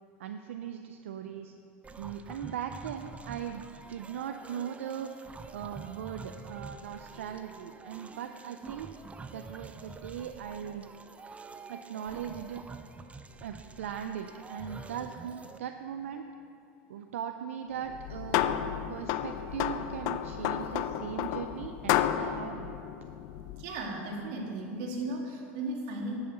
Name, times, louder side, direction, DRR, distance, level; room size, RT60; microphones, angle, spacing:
voice 1, 0.2-1.5 2.0-5.1 5.5-8.9 9.3-10.9 11.7-12.7 13.4-16.3 16.9-18.6 18.9-22.8, right 9 dB, 85° right, 7 dB, 0.4 m, -39 dB
sound 1, 1.8-15.6, right 4 dB, 20° right, 0.5 m, -47 dB
sound 2, 17.9-23.7, left 11 dB, 60° left, 0.4 m, -32 dB
voice 2, 23.6-26.2, right 2 dB, 60° right, -2 dB, 2.2 m, -35 dB
11.0 x 5.7 x 6.6 m, 2.7 s
hypercardioid pair, 100°, 7 cm